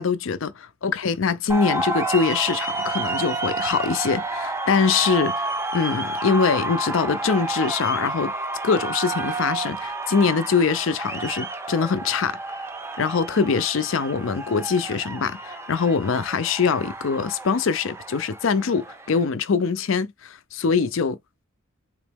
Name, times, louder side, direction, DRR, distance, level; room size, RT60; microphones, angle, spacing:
voice 1, 0.0-5.3 5.7-8.3 8.6-12.4 13.0-21.2, left 5 dB, 65° left, 0.5 m, -23 dB
sound 1, 1.5-19.3, right 2 dB, 10° right, 0.5 m, -30 dB
3.8 x 3.0 x 3.5 m
head